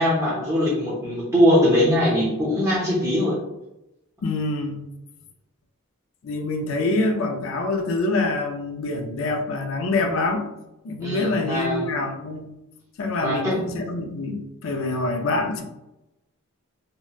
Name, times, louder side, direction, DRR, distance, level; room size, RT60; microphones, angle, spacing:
voice 1, 0.0-3.4 11.0-11.9 13.2-13.5, equal, 15° right, -7 dB, 0.6 m, -21 dB
voice 2, 4.2-4.8 6.2-10.5 10.8-12.5 13.0-15.6, left 2 dB, 60° left, 3 dB, 0.4 m, -25 dB
2.7 x 2.1 x 2.2 m, 0.91 s
head